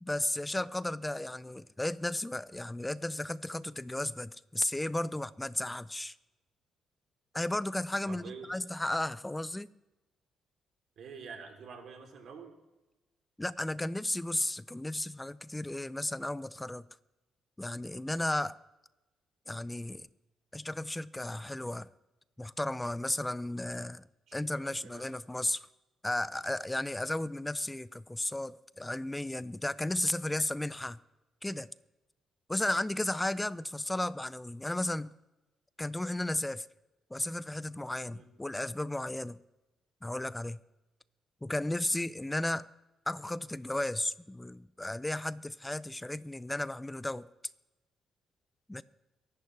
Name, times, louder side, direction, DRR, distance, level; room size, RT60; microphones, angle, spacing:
voice 1, 0.0-6.1 7.3-9.7 13.4-16.8 17.6-18.6 19.5-20.1 20.5-21.9 22.4-24.0 24.3-25.7 26.0-31.0 31.4-31.7 32.5-35.1 35.8-36.7 37.1-39.4 40.0-40.6 41.4-42.7 43.1-47.3 48.7-48.8, left 1 dB, 10° left, 0.5 m, -34 dB
voice 2, 8.1-8.6 11.0-12.5 24.3-25.1 38.1-38.3, right 5 dB, 65° right, 3.3 m, -47 dB
23.5 x 11.5 x 3.4 m
cardioid pair, 90°, 0 cm